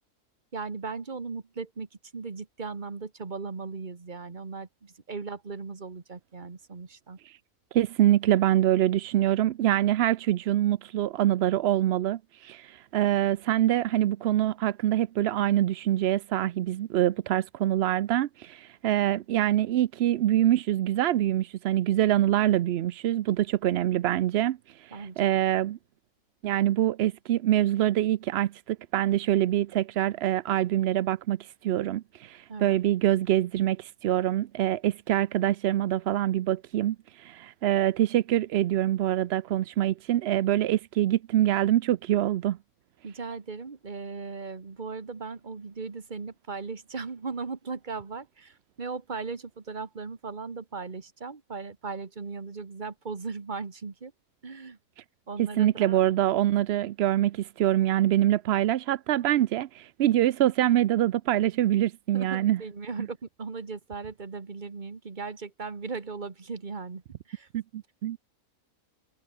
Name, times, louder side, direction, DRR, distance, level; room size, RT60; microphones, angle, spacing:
voice 1, 0.5-1.9 2.1-7.2 24.9-25.3 32.5-32.8 43.0-54.1 54.4-54.8 55.3-56.0 62.1-67.5, right 4 dB, 35° right, 1.6 m, -37 dB
voice 2, 7.7-25.8 26.4-42.6 55.4-62.6 67.5-68.2, right 13 dB, 70° right, 0.6 m, -25 dB
omnidirectional pair, 1.5 m